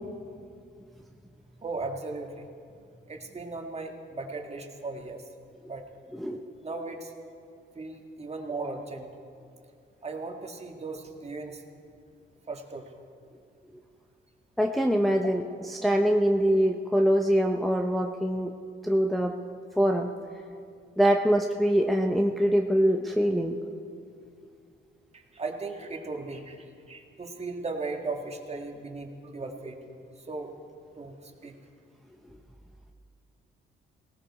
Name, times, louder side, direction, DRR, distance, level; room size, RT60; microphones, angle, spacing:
voice 1, 1.6-2.5 3.1-5.2 5.6-5.8 6.6-7.1 7.8-9.1 10.0-11.6 12.5-12.9 25.1-29.8 30.3-30.5 31.0-31.6, right 3 dB, 30° right, 3 dB, 1.9 m, -37 dB
voice 2, 14.6-15.4 15.8-18.5 18.8-19.3 19.8-20.1 21.0-23.6, equal, ahead, 2 dB, 0.8 m, -23 dB
19.0 x 18.0 x 4.3 m, 2.4 s
cardioid pair, 90°, 20 cm